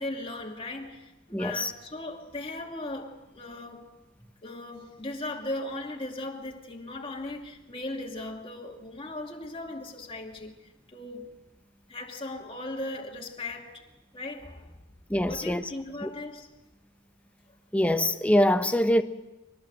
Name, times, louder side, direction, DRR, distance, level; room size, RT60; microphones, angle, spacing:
voice 1, 0.0-3.9 4.4-11.3 11.9-13.8 14.1-14.8 15.2-16.5, left 2 dB, 30° left, 2.6 m, -38 dB
voice 2, 1.3-1.7 15.1-15.6 16.0-16.1 17.7-19.0, left 1 dB, 5° left, 1.0 m, -24 dB
24.0 x 19.5 x 7.8 m
head